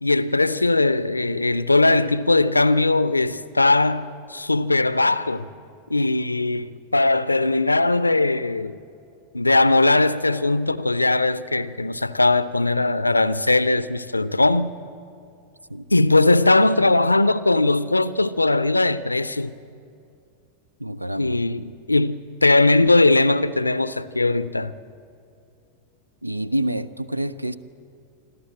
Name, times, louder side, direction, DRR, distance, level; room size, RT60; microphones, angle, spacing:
voice 1, 0.0-5.5 5.9-8.8 9.3-14.7 15.9-19.5 21.2-24.7, left 2 dB, 85° left, 0.5 m, -19 dB
voice 2, 20.8-21.4 26.2-27.5, right 1 dB, 85° right, 0.6 m, -27 dB
27.0 x 12.5 x 7.7 m
figure-of-eight pair, 90°, 0 cm